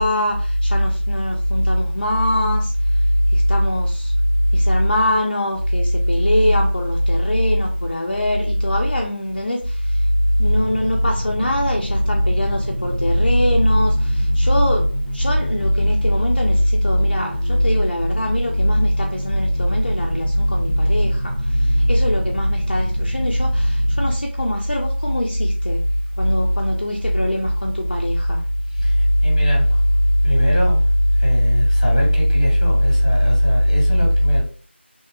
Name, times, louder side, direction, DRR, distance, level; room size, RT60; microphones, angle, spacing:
voice 1, 0.0-2.7 3.3-4.1 4.5-10.0 10.4-14.9 15.1-25.8 26.2-28.4, left 1 dB, 50° left, 0.4 m, -25 dB
sound 1, 10.4-24.1, equal, 30° right, 0.9 m, -25 dB
voice 2, 29.2-29.7 30.2-30.8 31.2-34.4, equal, 25° left, 1.1 m, -16 dB
2.8 x 2.3 x 2.2 m
figure-of-eight pair, 175°, 6 cm